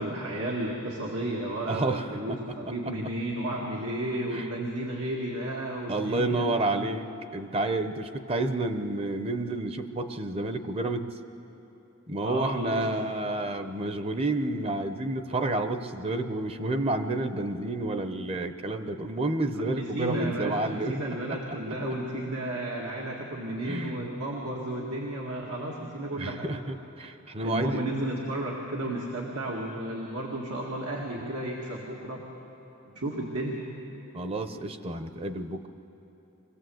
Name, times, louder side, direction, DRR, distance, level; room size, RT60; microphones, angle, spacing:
voice 1, 0.0-6.5 12.2-12.9 19.6-26.5 27.4-32.2 33.0-33.6, right 1 dB, 85° right, -2 dB, 2.1 m, -33 dB
voice 2, 1.7-2.6 2.8-2.9 4.3-4.5 5.9-7.1 7.3-11.2 12.1-21.0 23.7-24.0 26.2-27.8 34.1-35.7, right 2 dB, 25° right, 9 dB, 0.7 m, -30 dB
24.0 x 16.0 x 7.9 m, 3.0 s
head